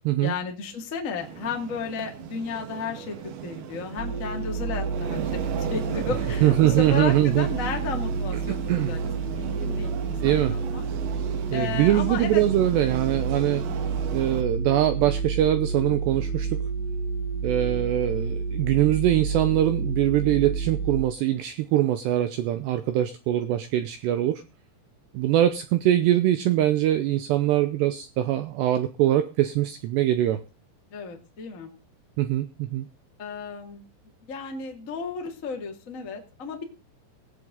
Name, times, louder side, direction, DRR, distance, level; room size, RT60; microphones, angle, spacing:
voice 1, 0.2-9.0 9.2-10.8 11.5-12.4 30.9-31.7 33.2-33.8 34.3-36.6, left 5 dB, 80° left, 2 dB, 0.7 m, -34 dB
sound 1, 1.2-14.4, right 9 dB, 70° right, 3.2 m, -35 dB
sound 2, 4.0-21.0, right 5 dB, 55° left, 1.0 m, -30 dB
voice 2, 6.4-7.5 8.5-8.9 10.2-10.5 11.5-13.6 14.1-16.6 17.4-24.4 25.1-30.4 32.2-32.9, right 13 dB, 85° right, 10 dB, 2.5 m, -23 dB
18.0 x 8.1 x 3.8 m, 0.32 s
omnidirectional pair, 5.9 m